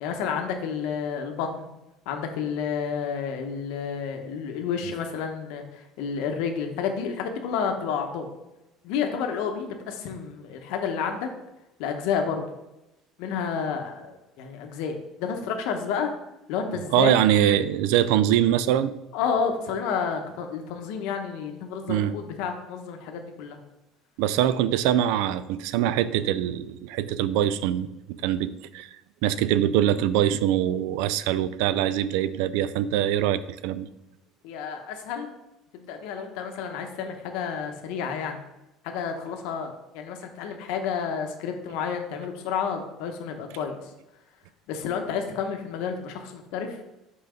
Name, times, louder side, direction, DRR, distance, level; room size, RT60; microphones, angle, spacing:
voice 1, 0.0-1.5 2.1-8.3 8.8-11.3 11.8-12.5 13.2-16.1 16.5-17.2 19.1-23.6 34.4-35.3 35.7-38.4 38.8-43.8 44.7-46.8, left 6 dB, 70° left, 4 dB, 0.8 m, -30 dB
voice 2, 16.9-18.9 21.9-22.1 24.2-27.9 28.2-28.9 29.2-33.9, right 11 dB, 75° right, 15 dB, 0.3 m, -23 dB
5.6 x 3.9 x 5.0 m, 0.94 s
cardioid pair, 175°, 0 cm